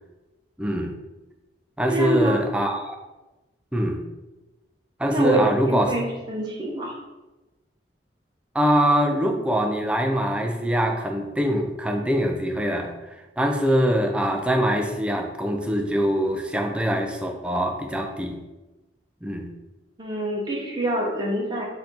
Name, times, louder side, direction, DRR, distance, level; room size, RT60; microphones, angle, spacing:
voice 1, 0.6-1.0 1.8-3.0 3.7-4.0 5.0-6.1 8.5-18.4 19.2-19.5, equal, 5° right, 2 dB, 0.4 m, -23 dB
voice 2, 1.9-2.5 5.1-6.9 20.0-21.6, right 1 dB, 25° right, -2 dB, 0.9 m, -26 dB
4.5 x 2.7 x 3.7 m, 1.1 s
head